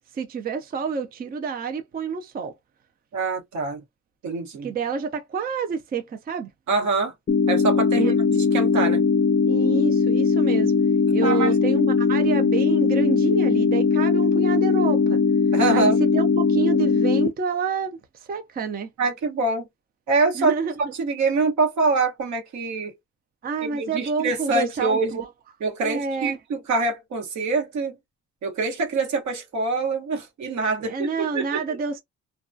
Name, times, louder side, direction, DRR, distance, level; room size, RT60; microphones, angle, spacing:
voice 1, 0.1-2.5 4.6-6.5 7.9-8.1 9.5-10.7 11.1-15.2 15.7-18.9 20.3-20.9 23.4-25.3 25.8-26.4 30.8-32.0, right 5 dB, 30° right, 0.5 m, -28 dB
voice 2, 3.1-3.8 4.2-4.7 6.7-7.1 7.5-9.0 11.2-11.5 15.5-16.0 19.0-19.7 20.1-20.5 21.0-22.9 23.7-25.2 25.6-28.0 28.4-31.8, right 3 dB, 70° right, 1.0 m, -25 dB
sound 1, 7.3-17.3, left 5 dB, 35° left, 0.5 m, -20 dB
2.2 x 2.2 x 2.5 m
cardioid pair, 90°, 30 cm